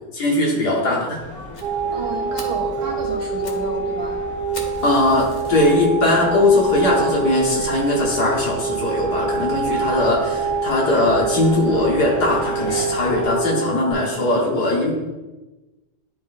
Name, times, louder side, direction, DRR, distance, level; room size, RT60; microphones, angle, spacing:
voice 1, 0.1-1.2 4.8-14.9, left 2 dB, 75° left, -3 dB, 2.0 m, -19 dB
sound 1, 1.2-13.3, left 1 dB, 10° left, 1.1 m, -36 dB
Fire, 1.5-1.7 2.1-2.2 2.3-2.6 3.2-3.7 3.9-4.0 4.5-5.9 6.5-6.6 7.1-7.2 7.5-7.6 7.9-8.0, left 2 dB, 40° left, 0.6 m, -39 dB
sound 2, 1.6-13.9, right 5 dB, 45° right, 0.9 m, -26 dB
voice 2, 1.9-4.2, right 3 dB, 65° right, -2 dB, 1.9 m, -31 dB
11.0 x 3.8 x 2.6 m, 1.1 s
omnidirectional pair, 1.8 m